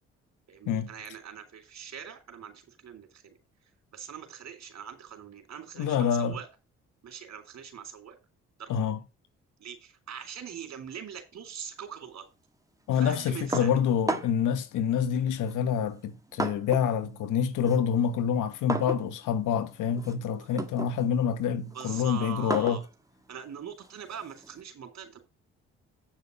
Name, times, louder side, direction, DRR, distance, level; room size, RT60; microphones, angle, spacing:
voice 1, 0.5-3.4 3.9-6.5 7.0-8.2 8.6-8.9 9.6-12.3 12.9-13.8 20.3-20.5 21.7-22.8 23.3-25.2, right 8 dB, 60° right, 3.6 m, -42 dB
voice 2, 5.8-6.4 8.7-9.0 12.9-22.8, left 8 dB, 75° left, 1.3 m, -27 dB
sound 1, 13.5-14.5 15.4-17.0 17.3-24.6, right 2 dB, 10° right, 1.8 m, -36 dB
9.1 x 5.7 x 5.2 m
hypercardioid pair, 50°, 31 cm